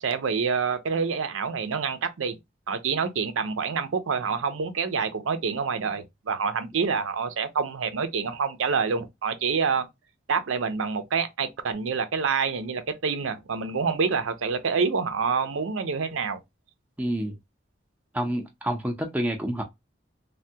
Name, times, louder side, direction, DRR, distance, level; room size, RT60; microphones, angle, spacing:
voice 1, 0.0-2.4 2.7-9.9 10.3-16.4, right 5 dB, 90° right, 0.5 m, -27 dB
voice 2, 17.0-17.3 18.1-19.6, right 1 dB, 10° right, 0.5 m, -28 dB
3.3 x 2.2 x 2.7 m
head